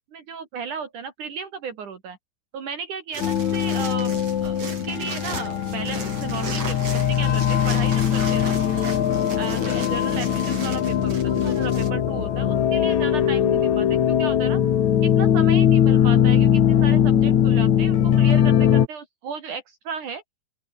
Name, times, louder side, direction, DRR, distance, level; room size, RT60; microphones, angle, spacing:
voice 1, 0.1-2.2 2.5-8.9 9.4-14.6 15.0-20.2, right 6 dB, 60° right, 3.9 m, -35 dB
sound 1, 3.1-11.9, right 4 dB, 45° right, 6.5 m, -37 dB
sound 2, 3.2-18.9, left 9 dB, 60° left, 2.9 m, -20 dB
open air
omnidirectional pair, 4.1 m